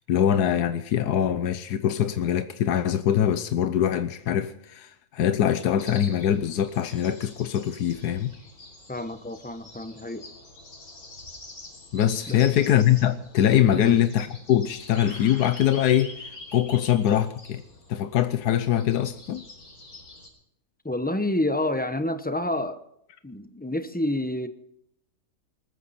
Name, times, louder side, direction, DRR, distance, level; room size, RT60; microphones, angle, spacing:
voice 1, 0.1-8.3 11.9-17.6 17.9-19.5, left 10 dB, 90° left, 1.4 m, -23 dB
sound 1, 5.8-20.3, left 2 dB, 65° left, 4.3 m, -45 dB
voice 2, 8.9-10.2 12.3-12.4 13.7-14.0 20.8-22.8 23.2-24.5, left 1 dB, 5° left, 0.9 m, -28 dB
20.5 x 14.5 x 4.3 m
omnidirectional pair, 1.6 m